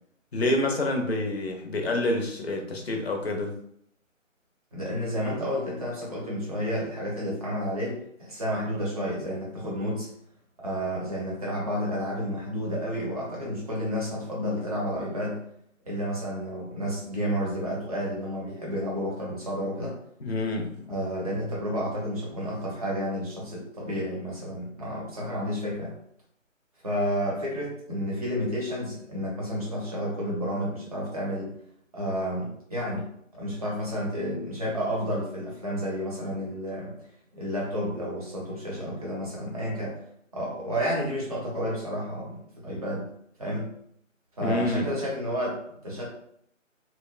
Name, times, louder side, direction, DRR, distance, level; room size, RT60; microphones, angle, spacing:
voice 1, 0.3-3.6 20.2-20.9 44.4-44.9, left 1 dB, 50° left, 2 dB, 0.6 m, -27 dB
voice 2, 4.7-10.1 10.6-15.4 15.9-20.0 20.9-25.9 26.8-31.5 31.9-33.1 33.3-37.0 37.3-40.0 40.3-43.1 43.4-43.7 44.4-46.1, equal, 30° right, -4 dB, 0.7 m, -31 dB
2.8 x 2.1 x 2.3 m, 0.69 s
figure-of-eight pair, 155°, 40 cm